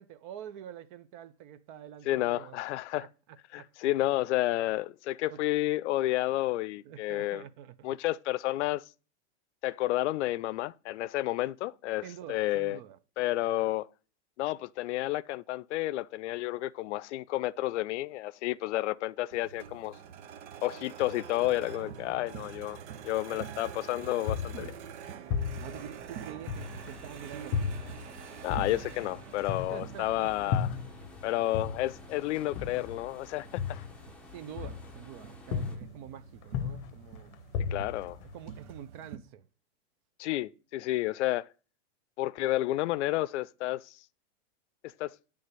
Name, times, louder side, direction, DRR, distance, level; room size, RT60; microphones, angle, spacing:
voice 1, 0.0-2.6 3.0-3.7 5.3-5.4 6.8-7.9 12.0-13.0 23.3-23.4 24.5-24.7 25.6-27.7 29.7-30.5 34.3-37.4 38.3-39.5, right 10 dB, 45° right, 0.6 m, -46 dB
voice 2, 2.1-3.1 3.5-7.4 7.8-8.8 9.6-12.0 12.3-12.8 13.2-13.9 14.4-20.0 20.6-22.8 23.0-24.7 28.4-30.7 31.2-33.6 37.7-38.2 40.2-41.5 42.2-43.9 45.0-45.1, left 16 dB, 85° left, 0.5 m, -31 dB
sound 1, 19.3-39.2, right 8 dB, 80° right, 1.0 m, -47 dB
sound 2, 24.3-27.1 27.5-31.2 31.5-35.2 35.5-36.1 36.4-38.8, left 7 dB, 45° left, 0.7 m, -35 dB
sound 3, 26.5-35.8, left 2 dB, 5° left, 0.7 m, -53 dB
9.6 x 3.4 x 6.7 m
supercardioid pair, 145°, 34 cm